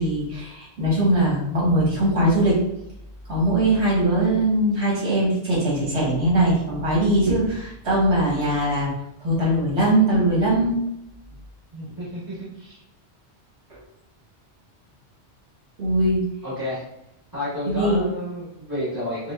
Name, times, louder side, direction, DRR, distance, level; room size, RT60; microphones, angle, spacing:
voice 1, 0.0-2.6 3.3-8.9 9.2-10.7 15.8-16.2 17.7-18.0, right 1 dB, 75° right, -6 dB, 1.7 m, -21 dB
voice 2, 11.7-12.8 16.4-16.8 17.3-19.3, left 1 dB, 20° right, -11 dB, 1.4 m, -31 dB
5.5 x 2.2 x 2.4 m, 0.81 s
omnidirectional pair, 1.1 m